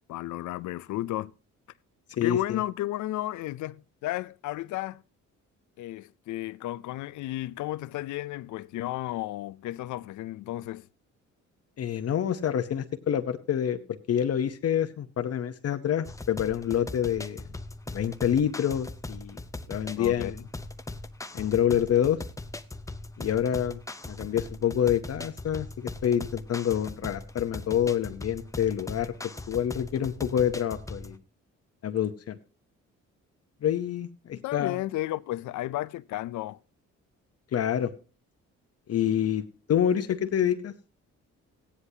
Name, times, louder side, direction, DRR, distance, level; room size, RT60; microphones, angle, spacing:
voice 1, 0.1-1.3 2.2-5.0 5.8-10.9 20.0-20.3 34.3-36.6, left 15 dB, 75° left, 0.5 m, -33 dB
voice 2, 2.2-2.6 11.8-13.8 14.1-17.4 17.9-19.4 19.7-20.4 21.3-22.2 23.2-23.8 24.1-29.1 29.5-31.2 31.8-32.4 33.6-34.8 37.5-37.9 38.9-39.4 39.7-40.7, left 9 dB, 55° left, 0.8 m, -27 dB
sound 1, 16.0-31.2, left 2 dB, 10° left, 0.7 m, -40 dB
16.0 x 10.0 x 2.8 m
cardioid pair, 90°, 30 cm